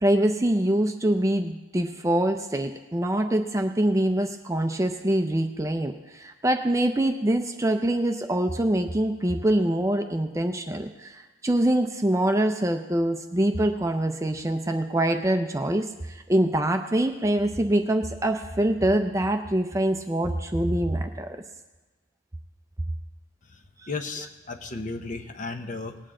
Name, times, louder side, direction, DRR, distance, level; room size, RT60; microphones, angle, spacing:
voice 1, 0.0-21.4, right 1 dB, 15° right, 6 dB, 0.5 m, -24 dB
voice 2, 23.5-26.0, left 3 dB, 40° left, 7 dB, 0.7 m, -35 dB
19.0 x 8.8 x 3.7 m, 1.2 s
head